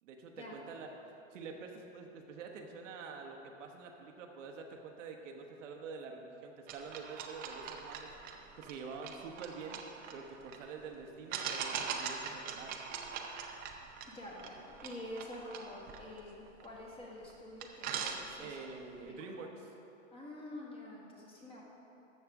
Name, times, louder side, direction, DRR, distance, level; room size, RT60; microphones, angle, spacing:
voice 1, 0.0-0.9 1.3-8.1 8.6-9.8 10.1-12.8 18.4-19.5, right 4 dB, 70° right, 3 dB, 1.1 m, -47 dB
sound 1, 6.7-10.6 11.3-16.9 17.3-17.4 17.6-18.7, right 7 dB, 25° right, 0.6 m, -42 dB
voice 2, 14.0-18.7 19.0-19.3 20.1-21.6, left 1 dB, 15° left, -3 dB, 1.5 m, -47 dB
13.0 x 6.6 x 3.6 m, 2.9 s
hypercardioid pair, 130°, 39 cm